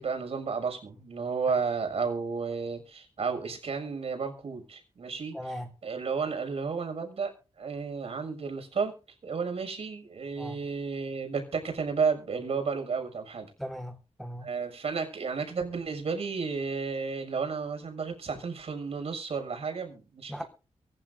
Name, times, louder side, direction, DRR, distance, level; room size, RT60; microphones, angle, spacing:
voice 1, 0.0-8.9 9.2-13.5 14.4-20.4, right 5 dB, 60° right, 5 dB, 6.4 m, -32 dB
voice 2, 5.3-5.7 10.4-10.6 13.6-14.5 20.3-20.4, equal, ahead, 3 dB, 1.8 m, -38 dB
24.0 x 11.5 x 2.7 m, 0.33 s
wide cardioid pair, 145°, 12 cm